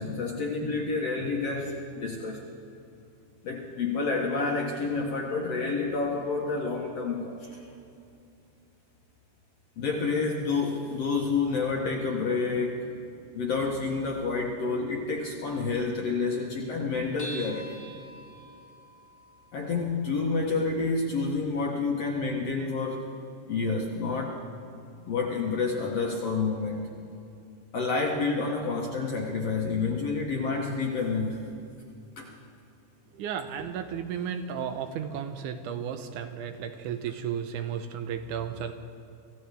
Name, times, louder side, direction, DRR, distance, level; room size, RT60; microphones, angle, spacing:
voice 1, 0.0-2.5 3.4-7.7 9.8-12.9 13.3-17.8 19.5-23.1 23.5-24.4 25.1-27.0 27.7-31.5 32.2-32.3, left 4 dB, 60° left, -1 dB, 1.9 m, -29 dB
sound 1, 17.2-21.9, right 1 dB, 20° left, 1.7 m, -47 dB
voice 2, 33.1-38.7, right 8 dB, 75° right, 8 dB, 2.0 m, -34 dB
26.5 x 15.5 x 3.4 m, 2.6 s
omnidirectional pair, 4.1 m